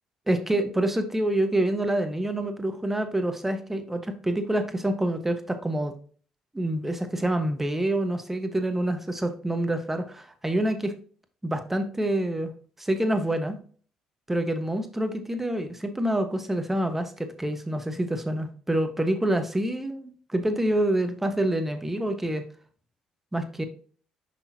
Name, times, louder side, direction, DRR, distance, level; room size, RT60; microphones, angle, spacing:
voice 1, 0.3-5.9 6.5-10.9 11.4-12.5 12.8-13.6 14.3-22.4 23.3-23.6, right 1 dB, 15° right, 7 dB, 1.3 m, -27 dB
6.1 x 5.7 x 2.8 m, 0.43 s
supercardioid pair, 60°, 2 cm